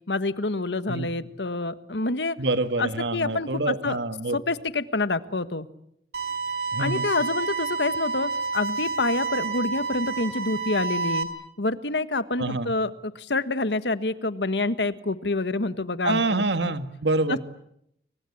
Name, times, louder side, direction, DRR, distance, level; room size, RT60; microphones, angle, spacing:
voice 1, 0.1-2.4 2.8-4.0 4.3-5.7 6.8-11.3 11.6-16.7 17.3-17.4, left 3 dB, 85° left, 12 dB, 1.5 m, -27 dB
voice 2, 2.4-4.4 6.7-7.1 12.4-12.7 16.0-17.4, right 2 dB, 85° right, 10 dB, 1.7 m, -26 dB
sound 1, 6.1-11.2, right 4 dB, 65° right, 4.7 m, -29 dB
29.5 x 23.5 x 8.6 m, 0.75 s
head